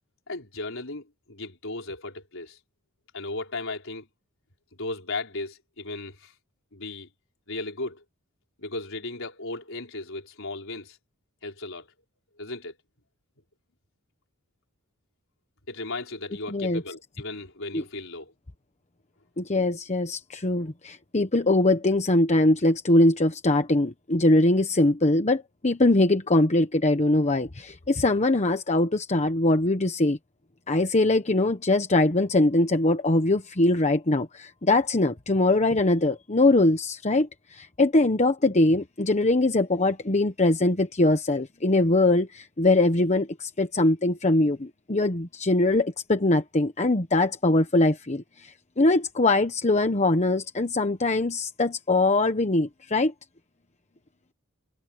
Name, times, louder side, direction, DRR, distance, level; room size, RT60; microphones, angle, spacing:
voice 1, 0.3-2.6 3.1-4.1 4.7-6.3 6.7-7.1 7.5-8.0 8.6-11.0 11.4-11.9 12.4-12.8 15.7-18.3, left 2 dB, 65° left, 4.9 m, -36 dB
voice 2, 16.5-16.8 17.7-17.8 19.4-30.2 30.7-53.1, left 2 dB, 35° left, 1.2 m, -22 dB
head